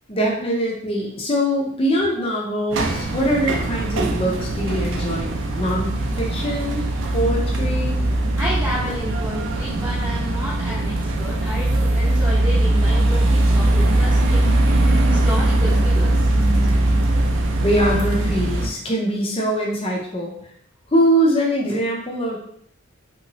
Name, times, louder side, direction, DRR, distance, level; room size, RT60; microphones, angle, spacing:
voice 1, 0.1-6.8 7.1-8.0 17.6-20.3 20.9-22.4, equal, 25° left, -1 dB, 0.6 m, -22 dB
sound 1, 2.7-18.7, right 1 dB, 65° right, 0.5 m, -20 dB
voice 2, 8.4-14.5 15.0-16.3, equal, 20° right, -10 dB, 0.8 m, -31 dB
3.1 x 3.0 x 2.7 m, 0.66 s
head